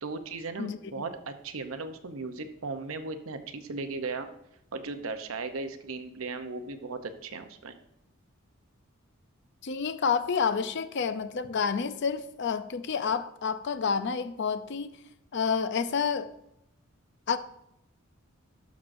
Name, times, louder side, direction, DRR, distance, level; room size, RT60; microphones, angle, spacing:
voice 1, 0.0-4.3 4.7-7.7, right 3 dB, 85° right, 0.7 m, -37 dB
voice 2, 9.6-15.0 15.3-16.3 17.3-17.4, left 6 dB, 60° left, 0.5 m, -29 dB
12.0 x 6.2 x 2.6 m
head